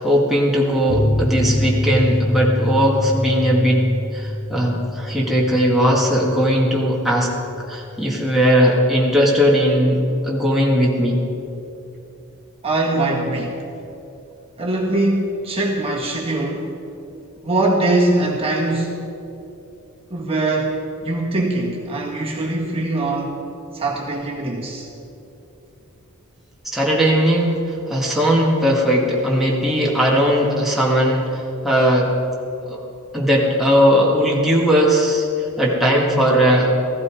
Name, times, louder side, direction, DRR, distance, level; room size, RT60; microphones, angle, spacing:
voice 1, 0.0-3.9 4.1-7.3 7.7-11.3 26.7-32.2 32.6-32.8 33.1-36.7, equal, ahead, -4 dB, 1.9 m, -18 dB
sound 1, 0.9-8.0 8.3-8.4 8.7-8.8, left 1 dB, 50° left, 1.0 m, -25 dB
voice 2, 12.6-13.6 14.6-16.7 17.4-19.0 20.1-20.8 21.0-23.4 23.7-24.9, right 2 dB, 25° right, -2 dB, 1.8 m, -22 dB
15.5 x 15.0 x 4.9 m, 2.9 s
head